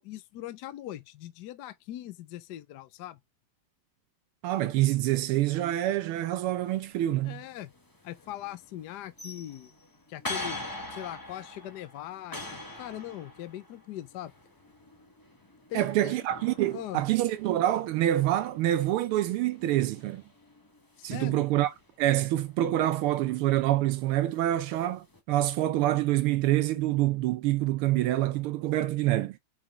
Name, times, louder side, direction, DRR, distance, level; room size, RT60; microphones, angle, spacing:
voice 1, 0.0-3.2 7.2-7.7 8.0-9.7 10.1-10.6 10.9-14.3 15.7-16.1 16.7-17.0 21.0-21.4, left 13 dB, 70° left, 1.0 m, -41 dB
voice 2, 4.4-7.4 15.7-20.2 21.0-29.4, right 14 dB, 80° right, 1.5 m, -26 dB
sound 1, 6.6-25.2, left 2 dB, 15° left, 0.8 m, -45 dB
5.8 x 5.0 x 4.9 m
omnidirectional pair, 2.4 m